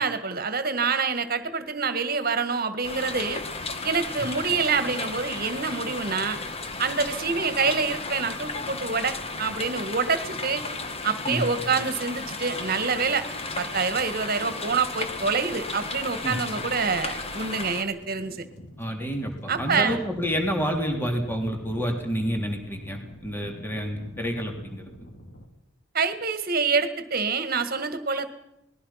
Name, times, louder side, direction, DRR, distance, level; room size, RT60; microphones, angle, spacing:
voice 1, 0.0-3.4 3.8-6.4 6.8-10.6 11.0-13.2 13.6-18.5 19.5-20.0 25.9-28.3, right 5 dB, 50° right, 11 dB, 1.7 m, -26 dB
sound 1, 2.8-17.8, left 3 dB, 30° left, 1.7 m, -34 dB
sound 2, 17.4-25.5, equal, 60° left, 3.5 m, -44 dB
voice 2, 18.8-24.9, equal, 10° left, 3 dB, 3.2 m, -29 dB
27.0 x 20.0 x 5.8 m, 0.85 s
head